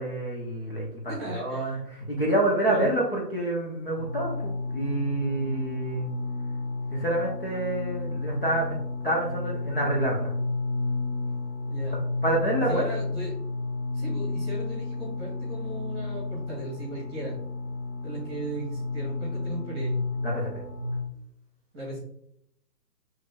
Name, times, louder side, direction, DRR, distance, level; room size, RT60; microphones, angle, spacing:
voice 1, 0.0-6.1 6.9-10.3 11.9-13.0 20.2-20.6, right 1 dB, 35° left, -3 dB, 0.7 m, -28 dB
voice 2, 1.1-1.8 2.5-2.9 11.7-12.0 12.7-13.4 13.9-17.4 18.0-20.0 21.7-22.0, right 1 dB, 15° right, -6 dB, 1.1 m, -37 dB
sound 1, 4.0-21.0, left 2 dB, ahead, 1.7 m, -32 dB
6.1 x 3.1 x 2.2 m, 0.73 s
hypercardioid pair, 175°, 49 cm